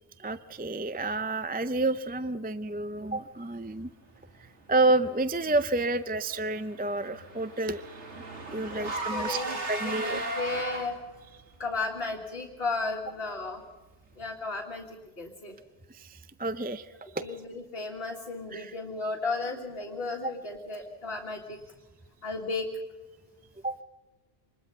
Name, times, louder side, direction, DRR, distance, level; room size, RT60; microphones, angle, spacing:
voice 1, 0.2-3.9 4.7-7.8 8.1-8.2 8.5-10.2 15.9-16.9 17.1-17.2 18.5-18.7 23.6-23.7, right 2 dB, 15° right, 12 dB, 0.4 m, -29 dB
Car / Engine, 6.2-11.2, right 2 dB, 90° right, 2.6 m, -36 dB
voice 2, 8.7-11.0 11.6-13.6 14.2-15.5 17.0-21.6 22.2-22.7, left 3 dB, 55° left, -1 dB, 2.2 m, -35 dB
25.0 x 21.0 x 5.6 m, 1.2 s
omnidirectional pair, 1.2 m